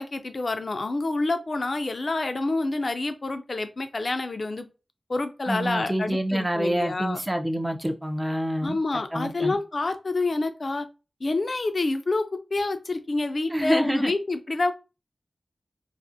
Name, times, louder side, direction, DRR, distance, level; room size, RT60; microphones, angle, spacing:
voice 1, 0.0-4.7 5.1-7.2 8.6-10.9 11.2-12.2 12.5-14.7, left 2 dB, 60° left, 0.4 m, -27 dB
voice 2, 5.5-8.8 9.1-9.6 13.5-14.1, equal, 15° right, 0.4 m, -27 dB
2.4 x 2.0 x 2.5 m
cardioid pair, 50°, 0 cm